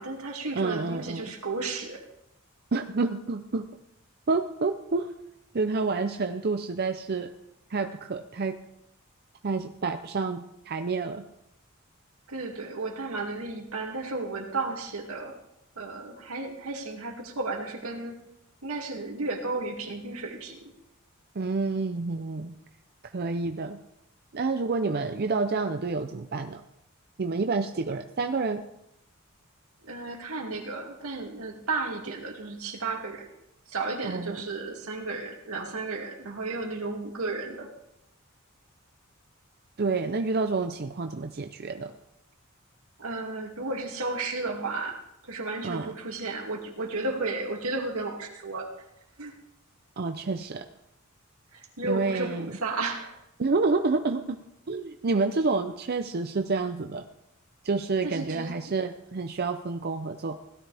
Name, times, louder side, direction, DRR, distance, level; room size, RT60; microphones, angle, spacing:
voice 1, 0.0-2.0 12.3-15.3 15.8-18.2 18.6-20.7 29.8-33.3 33.7-37.7 43.0-48.7 49.2-49.3 51.5-53.2 58.0-58.7, right 3 dB, 85° right, 1 dB, 2.4 m, -33 dB
voice 2, 0.6-1.3 2.7-3.7 4.3-5.1 5.5-7.3 7.7-8.6 9.4-11.2 21.4-22.5 23.1-23.8 24.3-26.6 27.2-28.6 34.0-34.4 39.8-41.9 45.6-45.9 50.0-50.6 51.8-52.6 53.4-54.4 54.7-57.0 57.6-60.4, right 3 dB, 45° right, 7 dB, 0.6 m, -28 dB
17.0 x 12.5 x 3.5 m, 0.83 s
head